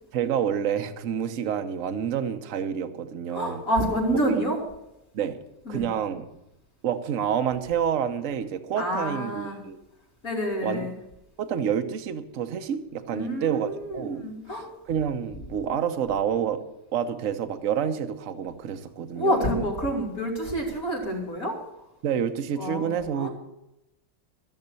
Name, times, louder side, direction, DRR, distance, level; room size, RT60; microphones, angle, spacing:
voice 1, 0.1-3.6 4.2-4.4 5.1-5.4 5.7-6.3 6.8-9.8 10.6-10.9 11.4-14.3 14.5-16.6 16.9-19.7 22.0-23.3, right 8 dB, 50° right, 8 dB, 1.1 m, -28 dB
voice 2, 3.3-4.6 5.7-5.8 8.8-9.6 10.2-10.9 13.1-14.7 19.2-21.5 22.6-23.3, equal, 45° left, -3 dB, 3.8 m, -28 dB
15.0 x 6.6 x 8.2 m, 0.92 s
omnidirectional pair, 2.0 m